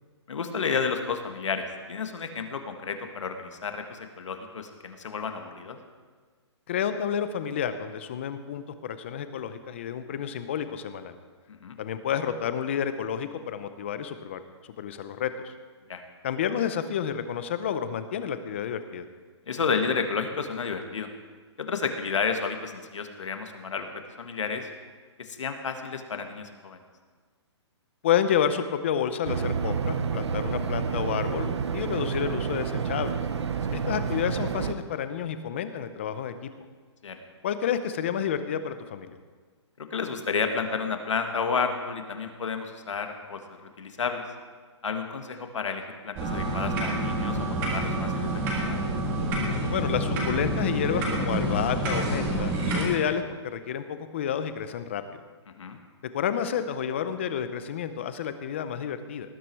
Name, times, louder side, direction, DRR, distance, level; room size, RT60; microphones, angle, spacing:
voice 1, 0.3-5.8 11.5-11.8 15.9-16.0 19.5-21.1 21.6-23.9 24.2-24.7 25.2-26.8 33.7-33.8 37.0-37.2 39.8-44.2 44.8-48.8 55.6-55.8, left 5 dB, 85° left, 5 dB, 1.7 m, -31 dB
voice 2, 6.7-11.2 11.8-14.4 14.8-15.5 16.2-19.1 28.0-33.2 33.7-36.5 37.4-39.2 49.7-55.2 56.1-59.3, left 8 dB, 25° left, 11 dB, 0.6 m, -30 dB
sound 1, 29.2-34.7, right 6 dB, 65° right, 0.9 m, -29 dB
sound 2, 46.2-52.8, right 1 dB, 15° right, 1.7 m, -28 dB
18.5 x 9.2 x 4.7 m, 1.5 s
hypercardioid pair, 175°, 15 cm